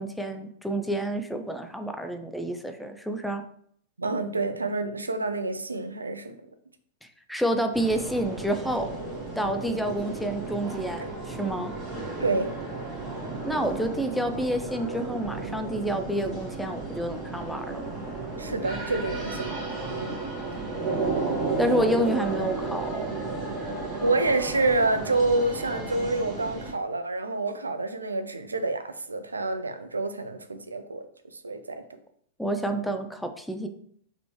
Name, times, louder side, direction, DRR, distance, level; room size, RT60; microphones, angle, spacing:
voice 1, 0.0-3.4 7.3-8.9 9.4-11.7 13.4-17.9 21.6-23.1 32.4-33.7, right 1 dB, ahead, 6 dB, 0.5 m, -29 dB
voice 2, 4.0-6.4 11.0-11.1 12.2-12.6 18.4-19.5 19.9-20.2 24.0-31.8, right 2 dB, 85° right, 9 dB, 0.4 m, -28 dB
sound 1, 7.7-26.7, right 3 dB, 20° right, 1.7 m, -33 dB
4.0 x 3.0 x 3.2 m, 0.64 s
figure-of-eight pair, 100°, 0 cm